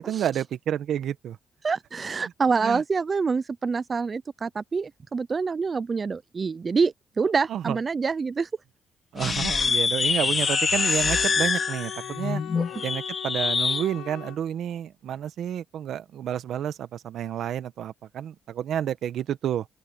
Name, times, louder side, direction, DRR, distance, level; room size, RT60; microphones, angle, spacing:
voice 1, 0.0-1.4 2.6-2.8 7.5-7.8 9.1-12.4 12.8-19.7, right 10 dB, 70° right, 1.2 m, -30 dB
voice 2, 1.6-8.5 12.6-12.7, right 5 dB, 35° right, 0.5 m, -26 dB
sound 1, 9.2-13.9, left 5 dB, 40° left, 2.4 m, -25 dB
Wind instrument woodwind instrument, 10.4-14.4, left 13 dB, 90° left, 2.4 m, -39 dB
open air
cardioid pair, 90°, 0 cm